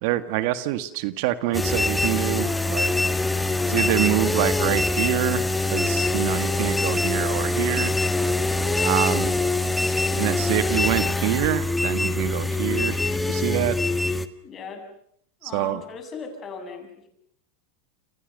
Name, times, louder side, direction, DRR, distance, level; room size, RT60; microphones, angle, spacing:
voice 1, 0.0-2.9 3.7-7.9 8.8-9.4 10.1-13.0 13.3-13.8 15.4-15.8, right 15 dB, 60° right, 12 dB, 1.8 m, -26 dB
sound 1, 1.5-14.3, left 2 dB, 5° left, 1.5 m, -24 dB
voice 2, 14.4-14.8 15.4-17.1, left 5 dB, 30° left, 5 dB, 7.6 m, -38 dB
29.0 x 28.0 x 6.8 m, 0.67 s
supercardioid pair, 130°, 0 cm